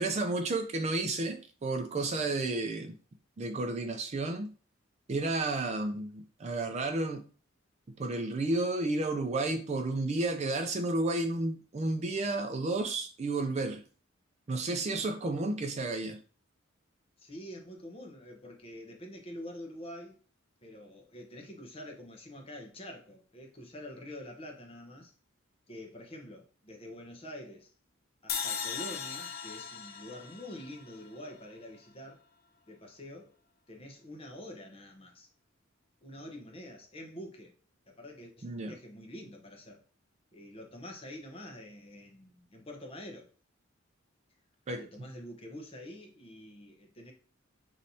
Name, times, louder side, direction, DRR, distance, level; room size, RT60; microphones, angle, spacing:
voice 1, 0.0-2.9 3.4-4.5 5.1-7.3 8.0-13.8 14.5-16.2 38.4-38.7 44.7-44.8, right 2 dB, 35° right, 0.4 m, -32 dB
voice 2, 17.2-20.2 20.6-25.1 25.7-27.7 28.2-32.2 32.7-33.3 33.7-35.3 36.0-37.5 37.9-39.8 40.3-43.3 44.8-47.1, left 1 dB, 30° left, 0.9 m, -46 dB
sound 1, 28.3-31.5, left 7 dB, 50° left, 0.5 m, -38 dB
5.6 x 3.1 x 2.7 m
head